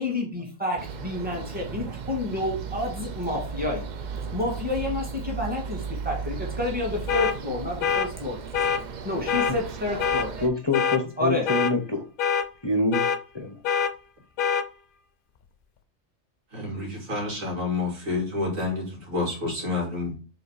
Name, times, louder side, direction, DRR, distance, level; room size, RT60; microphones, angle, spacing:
voice 1, 0.0-3.9 4.1-8.4 9.0-10.5 11.2-11.5, left 2 dB, 5° right, -2 dB, 1.9 m, -29 dB
sound 1, 0.8-10.5, right 6 dB, 60° right, 0.4 m, -35 dB
sound 2, 7.1-7.3 7.8-8.1 8.5-8.8 9.3-9.5 10.0-10.3 10.7-11.0 11.5-11.7 12.2-12.5 12.9-13.2 13.6-13.9 14.4-14.6, left 7 dB, 60° left, 0.6 m, -24 dB
voice 2, 10.4-12.1 12.6-13.1 13.3-13.6, left 3 dB, 25° left, 3 dB, 0.7 m, -25 dB
voice 3, 16.5-20.1, left 3 dB, 90° right, -1 dB, 2.6 m, -29 dB
4.9 x 4.0 x 4.8 m, 0.34 s
omnidirectional pair, 1.3 m